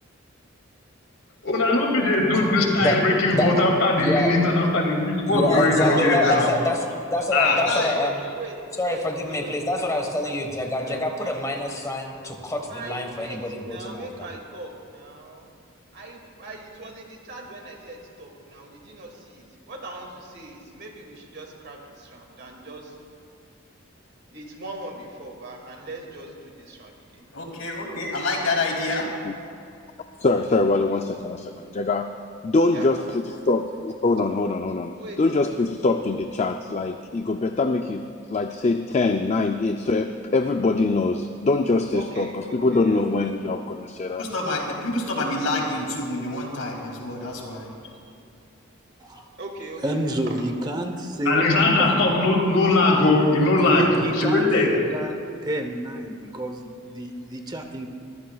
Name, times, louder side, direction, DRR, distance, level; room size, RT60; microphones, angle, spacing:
voice 1, 1.4-6.5 7.3-7.6 51.3-53.9 54.1-54.7, left 2 dB, 70° left, 0 dB, 2.5 m, -20 dB
voice 2, 4.0-4.3 5.3-6.8 7.1-8.2 8.8-14.3, left 1 dB, 15° left, 3 dB, 1.4 m, -26 dB
voice 3, 5.5-6.6 7.4-8.0 27.3-29.1 44.2-47.7, left 2 dB, 90° left, 0 dB, 2.8 m, -28 dB
voice 4, 7.1-8.1 8.4-8.5 8.8-9.0 9.3-9.8 10.3-10.4 10.9-11.4 12.7-15.5 15.9-22.9 24.3-27.2 32.7-32.9 35.0-35.2 35.5-35.6 41.9-43.0 49.4-50.3, right 2 dB, 55° right, 1 dB, 2.2 m, -39 dB
voice 5, 30.2-32.1 32.4-44.3, left 3 dB, 35° left, 6 dB, 0.4 m, -23 dB
voice 6, 49.8-52.0 53.3-55.1 55.4-57.9, right 1 dB, 20° right, 4 dB, 0.9 m, -29 dB
23.5 x 15.0 x 2.4 m, 2.6 s
head